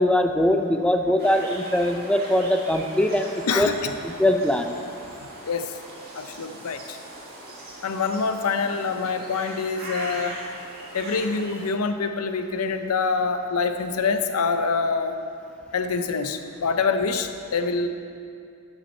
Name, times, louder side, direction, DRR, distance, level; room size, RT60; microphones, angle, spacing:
voice 1, 0.0-3.7 4.0-4.7, left 1 dB, 5° left, 5 dB, 0.4 m, -22 dB
sound 1, 1.2-11.7, right 1 dB, 45° right, 1.5 m, -40 dB
voice 2, 3.5-3.9 5.5-5.7 6.1-7.0 7.8-10.4 10.9-15.2 15.7-17.9, left 4 dB, 75° left, 8 dB, 0.6 m, -25 dB
11.5 x 5.7 x 4.3 m, 2.4 s
head